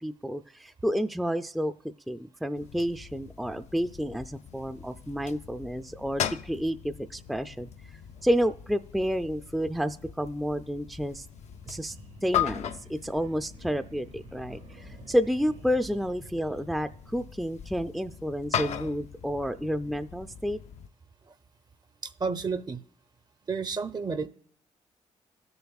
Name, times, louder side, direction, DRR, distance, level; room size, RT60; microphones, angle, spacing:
voice 1, 0.0-1.7 2.1-7.7 8.2-11.3 11.7-12.0 12.2-20.6, equal, ahead, 8 dB, 0.4 m, -30 dB
sound 1, 2.5-20.9, left 9 dB, 70° left, 0.5 m, -39 dB
sound 2, 11.5-17.8, right 5 dB, 80° right, 1.8 m, -53 dB
voice 2, 22.0-22.8 23.5-24.3, right 4 dB, 35° right, 13 dB, 0.6 m, -31 dB
16.5 x 6.9 x 2.4 m, 0.64 s
supercardioid pair, 60°, 12 cm